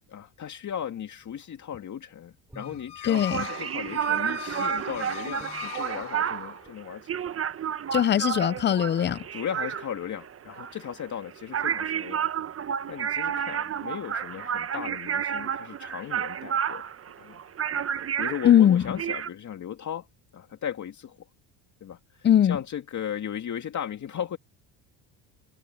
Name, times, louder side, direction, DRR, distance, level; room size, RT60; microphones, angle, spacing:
voice 1, 0.1-7.2 7.9-8.0 9.3-12.5 12.9-16.8 17.2-17.4 18.2-20.1 20.3-21.3 21.8-24.4, left 9 dB, 40° left, 2.3 m, -36 dB
sound 1, 2.5-6.7, left 12 dB, 65° left, 3.8 m, -40 dB
Guitar, 2.5-4.2 4.5-6.2 6.6-6.8 7.2-7.5 7.9-8.0 8.3-8.5 8.8-9.0, right 1 dB, 5° right, 7.6 m, -52 dB
voice 2, 3.0-3.4 7.9-9.2 18.4-18.8 22.2-22.6, left 10 dB, 25° left, 0.5 m, -20 dB
sound 2, 3.1-19.3, right 8 dB, 30° right, 1.1 m, -31 dB
supercardioid pair, 95°, 43 cm